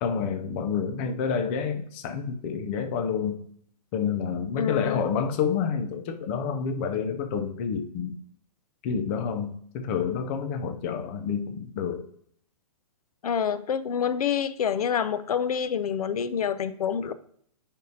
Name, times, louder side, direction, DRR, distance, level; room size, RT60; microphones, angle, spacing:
voice 1, 0.0-3.4 3.9-8.1 8.8-12.0, left 6 dB, 20° left, 5 dB, 0.4 m, -29 dB
voice 2, 4.6-5.0 13.2-17.1, left 7 dB, 75° left, 13 dB, 0.6 m, -27 dB
10.0 x 3.6 x 2.7 m, 0.64 s
hypercardioid pair, 160°, 19 cm